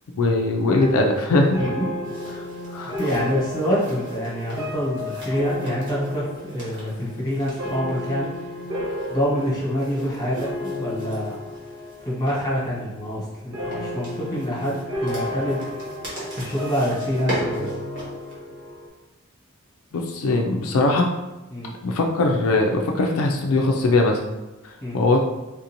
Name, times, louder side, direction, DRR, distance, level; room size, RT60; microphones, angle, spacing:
voice 1, 0.1-1.6 2.4-2.5 2.7-2.9 19.9-21.1 21.8-24.2 24.6-25.2, left 2 dB, 80° left, 1 dB, 0.4 m, -21 dB
sound 1, 0.7-12.2 12.5-13.1 13.5-18.9, left 1 dB, 80° right, 0.9 m, -33 dB
voice 2, 1.6-2.0 3.0-8.3 9.1-11.4 12.0-15.7 16.3-17.7 21.5-21.7 24.8-25.0, equal, 20° left, -6 dB, 1.1 m, -26 dB
sound 2, 2.0-18.3, right 1 dB, 60° right, 1.4 m, -39 dB
3.6 x 2.5 x 2.8 m, 1.1 s
head